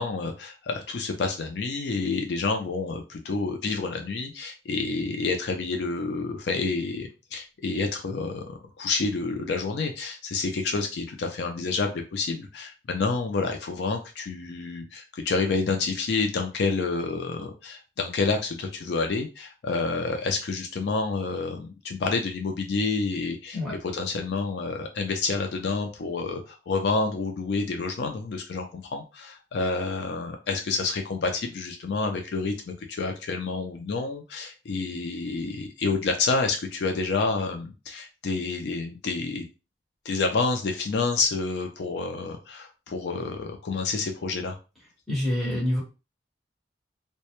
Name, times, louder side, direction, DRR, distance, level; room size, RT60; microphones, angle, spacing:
voice 1, 0.0-39.4 40.1-44.6, left 4 dB, 65° left, 4 dB, 0.4 m, -29 dB
voice 2, 45.1-45.8, left 1 dB, ahead, -6 dB, 1.0 m, -26 dB
2.1 x 2.0 x 2.9 m, 0.30 s
head